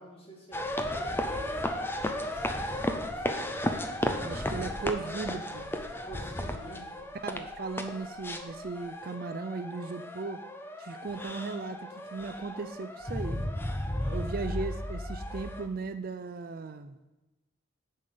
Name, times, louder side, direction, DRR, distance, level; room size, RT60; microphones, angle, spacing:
voice 1, 0.0-4.7 5.9-7.0 14.0-14.3, left 1 dB, 30° left, -2 dB, 2.0 m, -48 dB
sound 1, 0.5-15.7, left 1 dB, 10° left, 0.4 m, -34 dB
voice 2, 4.2-5.7 7.2-10.4 10.8-13.5 14.1-17.0, right 4 dB, 45° right, 10 dB, 0.4 m, -37 dB
7.2 x 5.5 x 6.7 m, 1.0 s
head